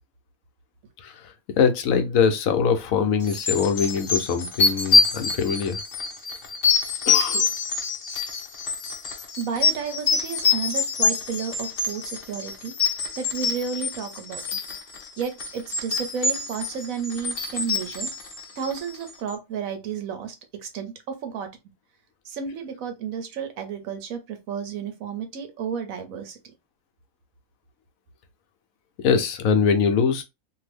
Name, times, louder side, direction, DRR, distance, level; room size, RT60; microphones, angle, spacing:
voice 1, 1.0-5.8 7.1-7.5 29.0-30.2, left 6 dB, 75° left, 1.1 m, -23 dB
sound 1, 3.2-19.1, left 4 dB, 50° left, 0.9 m, -25 dB
voice 2, 9.4-12.7 13.2-14.4 15.2-18.1 18.6-21.5 22.3-26.4, right 7 dB, 75° right, 1.2 m, -32 dB
2.8 x 2.6 x 3.3 m
omnidirectional pair, 1.5 m